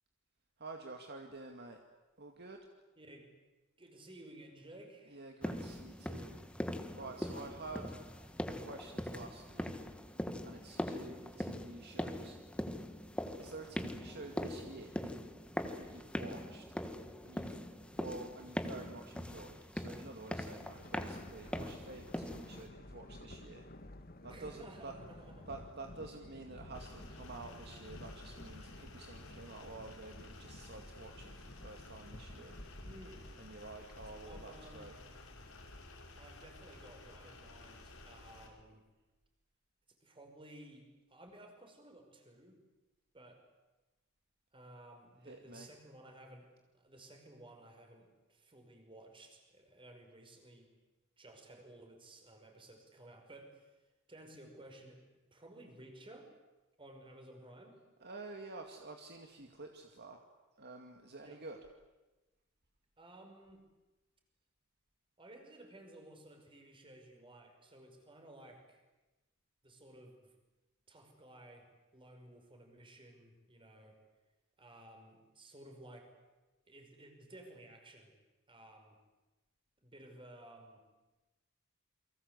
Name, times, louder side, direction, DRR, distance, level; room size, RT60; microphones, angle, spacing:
voice 1, 0.6-1.8 2.2-2.6 5.0-6.4 6.9-7.9 8.5-9.7 10.4-12.4 13.4-15.1 15.8-16.6 17.2-17.6 18.0-23.7 24.2-25.0 25.4-32.6 33.3-35.0 45.2-45.7 58.0-60.2 60.6-61.6, right 3 dB, 50° right, 3 dB, 2.2 m, -49 dB
voice 2, 3.0-3.3 3.8-5.3 24.3-25.5 32.8-33.3 34.2-35.1 36.2-38.9 40.0-42.6 43.1-43.4 44.5-46.5 46.7-50.7 51.2-53.7 54.1-55.0 55.3-56.3 56.8-57.8 61.2-61.4 63.0-63.6 65.2-68.8 69.6-70.4 70.9-71.7 71.9-74.0 74.6-76.1 76.7-78.1 78.5-79.0 79.8-80.8, right 1 dB, 25° right, 4 dB, 5.4 m, -55 dB
sound 1, 5.4-22.7, equal, 5° left, 1.6 m, -42 dB
Thunder, 20.5-37.1, left 1 dB, 45° left, 1.6 m, -53 dB
sound 2, 26.7-38.5, left 2 dB, 80° left, 5.3 m, -54 dB
29.0 x 23.5 x 8.3 m, 1.1 s
head